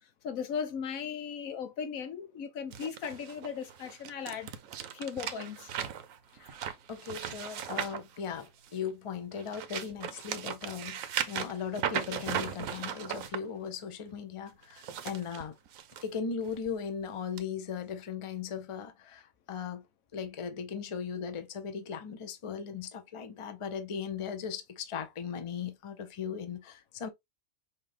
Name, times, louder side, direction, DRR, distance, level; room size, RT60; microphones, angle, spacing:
voice 1, 0.2-4.5 4.9-5.7, left 7 dB, 90° left, 1.3 m, -37 dB
sound 1, 2.7-8.8 9.3-13.4 14.6-16.0 16.5-16.7 17.4-17.5, right 9 dB, 80° right, 1.1 m, -37 dB
voice 2, 6.9-11.0 11.3-15.6 16.0-19.8 20.1-27.1, left 7 dB, 35° left, 0.5 m, -38 dB
5.7 x 2.7 x 3.3 m
omnidirectional pair, 1.4 m